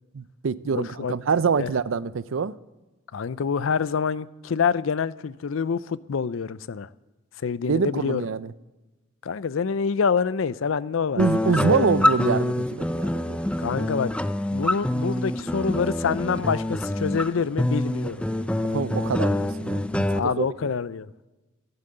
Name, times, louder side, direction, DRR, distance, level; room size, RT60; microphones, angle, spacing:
voice 1, 0.1-2.5 7.7-8.5 11.2-13.4 13.6-13.8 18.6-20.5, right 5 dB, 70° right, 0.5 m, -25 dB
voice 2, 0.7-1.1 1.5-1.7 3.1-6.9 7.4-8.2 9.2-11.9 13.6-14.1 14.5-18.2 20.1-21.1, left 6 dB, 70° left, 0.5 m, -26 dB
sound 1, 11.2-20.2, left 1 dB, 5° left, 0.4 m, -26 dB
15.0 x 11.0 x 6.7 m
head